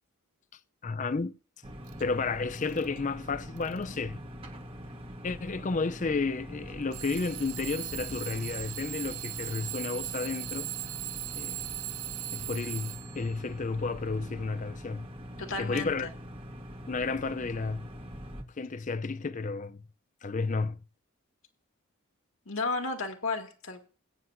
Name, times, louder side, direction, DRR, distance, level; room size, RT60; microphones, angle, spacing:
voice 1, 0.8-1.3 2.0-4.2 5.2-10.7 11.3-11.6 12.3-15.1 15.6-16.1 16.9-17.9 18.6-19.8 20.2-20.8, left 4 dB, 35° left, 0.5 m, -32 dB
sound 1, 1.6-18.4, equal, 25° right, 1.4 m, -43 dB
Alarm / Clock, 1.9-2.0 2.6-3.0 3.6-4.0 4.8-4.9 6.9-13.3, right 16 dB, 85° right, 0.6 m, -39 dB
voice 2, 15.4-16.0 22.5-23.8, left 3 dB, 65° left, 2.2 m, -33 dB
21.5 x 9.5 x 2.6 m
head